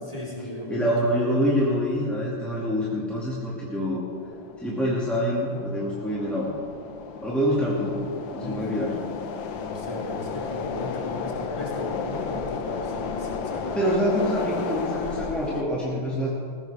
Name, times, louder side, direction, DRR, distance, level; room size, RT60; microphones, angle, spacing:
voice 1, 0.1-1.1 8.4-8.8 9.5-13.7, left 1 dB, 15° left, -5 dB, 3.5 m, -36 dB
voice 2, 0.7-4.1 4.6-6.6 7.2-8.0 8.3-9.0 13.7-16.3, equal, ahead, -7 dB, 2.1 m, -26 dB
sound 1, 4.1-15.6, left 6 dB, 65° left, 1.6 m, -33 dB
19.5 x 16.5 x 3.6 m, 2.3 s
omnidirectional pair, 2.4 m